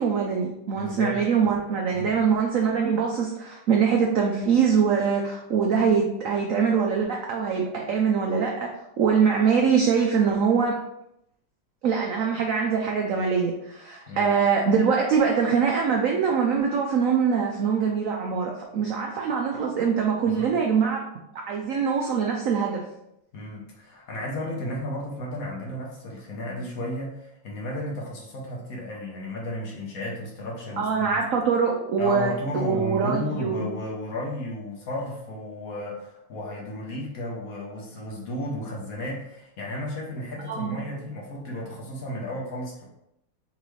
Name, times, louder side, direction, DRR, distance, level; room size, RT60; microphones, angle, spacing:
voice 1, 0.0-8.7 9.0-10.7 11.8-21.0 21.5-22.8 30.8-33.7 40.5-40.8, right 6 dB, 75° right, 0 dB, 0.7 m, -23 dB
voice 2, 0.7-1.1 1.9-2.2 14.1-14.3 20.3-20.5 23.3-31.2 32.0-42.8, left 1 dB, 55° left, -2 dB, 1.2 m, -33 dB
4.1 x 3.8 x 3.1 m, 0.81 s
omnidirectional pair, 2.0 m